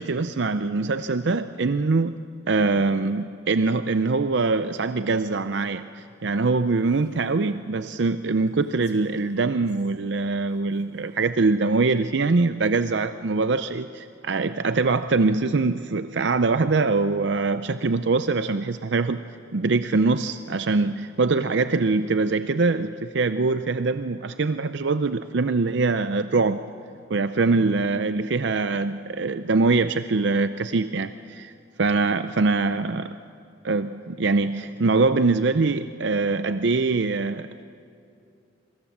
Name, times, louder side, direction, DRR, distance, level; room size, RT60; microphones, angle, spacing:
voice 1, 0.0-2.2 2.5-19.2 19.5-26.6 27.1-31.5 31.8-33.2 33.6-37.6, right 3 dB, 65° right, 11 dB, 0.6 m, -23 dB
Female speech woman speaking, 6.7-7.4 8.5-9.9 10.5-11.4, left 1 dB, 60° left, 3.4 m, -50 dB
26.5 x 24.0 x 7.3 m, 2.5 s
head